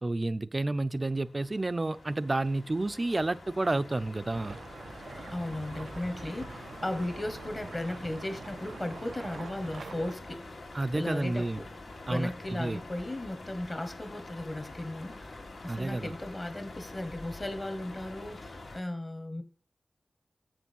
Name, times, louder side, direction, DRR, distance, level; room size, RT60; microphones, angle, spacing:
voice 1, 0.0-4.6 10.7-11.6 12.1-12.8 15.7-16.1, right 2 dB, 30° right, 0.5 m, -30 dB
sound 1, 0.8-18.8, left 2 dB, 90° left, 2.4 m, -46 dB
sound 2, 4.3-10.1, right 5 dB, 90° right, 0.4 m, -45 dB
voice 2, 5.1-10.5 10.9-11.7 12.1-15.4 15.6-19.4, left 1 dB, 30° left, 1.3 m, -36 dB
7.9 x 6.1 x 5.4 m
wide cardioid pair, 115°, 0 cm